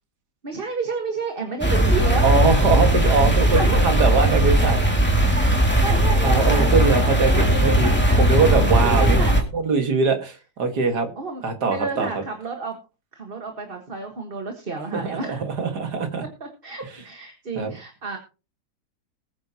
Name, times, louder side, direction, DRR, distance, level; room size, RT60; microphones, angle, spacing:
voice 1, 0.4-2.2 3.5-4.2 5.8-9.4 11.2-12.8 13.1-15.5 16.2-18.2, right 4 dB, 35° right, 3 dB, 1.7 m, -31 dB
sound 1, 1.6-9.4, right 1 dB, 5° left, 2.2 m, -18 dB
voice 2, 2.2-4.9 6.2-7.9 8.2-9.2 9.5-11.1 11.4-12.1 14.9-16.2 17.6-17.7, right 4 dB, 85° right, 6 dB, 2.4 m, -22 dB
20.0 x 9.3 x 2.9 m, 0.32 s
omnidirectional pair, 1.7 m